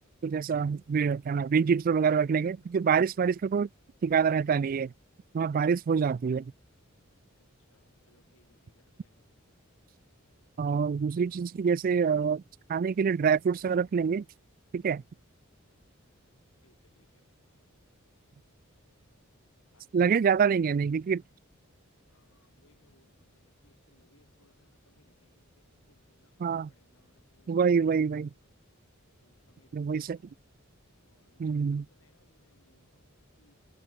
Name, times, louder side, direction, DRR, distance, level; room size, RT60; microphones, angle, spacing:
voice 1, 0.2-3.7 4.0-4.9 5.3-6.5 10.6-12.4 12.7-14.2 14.7-15.0 19.9-21.2 26.4-26.7 27.5-28.3 29.7-30.2 31.4-31.8, right 6 dB, 45° right, 0.3 m, -26 dB
voice 2, 7.4-9.6 16.6-17.2 19.7-20.5 22.1-28.1 29.2-30.2 31.0-33.5, left 2 dB, 70° left, 6.7 m, -69 dB
open air
head